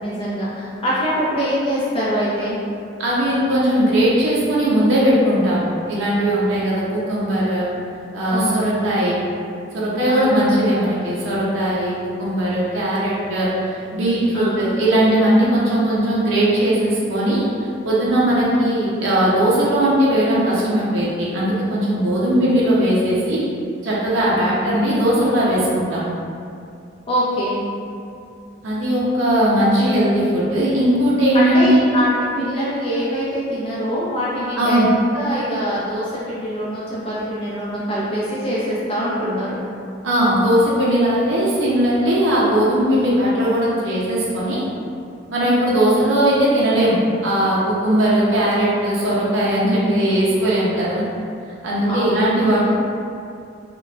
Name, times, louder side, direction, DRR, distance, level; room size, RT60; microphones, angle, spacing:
voice 1, 0.0-2.6 8.3-8.7 10.0-10.4 14.3-14.6 24.4-24.5 27.1-27.7 31.3-34.9 35.1-39.5 51.9-52.2, equal, 30° left, -8 dB, 0.4 m, -24 dB
voice 2, 3.0-7.7 8.1-9.2 9.7-17.5 17.8-23.4 23.8-26.1 28.6-31.8 34.6-34.8 40.0-44.6 45.3-51.0 51.6-52.7, right 1 dB, 75° right, -7 dB, 0.5 m, -18 dB
3.9 x 2.2 x 2.3 m, 2.4 s
head